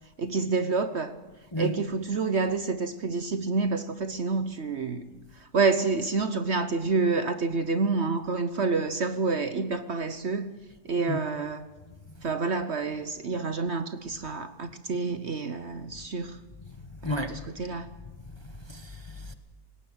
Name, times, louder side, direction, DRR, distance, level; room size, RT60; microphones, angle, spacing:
voice 1, 0.2-1.1 1.6-5.1 5.4-10.5 10.8-11.7 12.2-16.4 17.0-17.9, right 4 dB, 50° right, 1.1 m, -28 dB
voice 2, 17.0-17.5 18.4-19.3, left 1 dB, 20° left, 0.9 m, -33 dB
19.0 x 17.5 x 8.0 m
omnidirectional pair, 1.7 m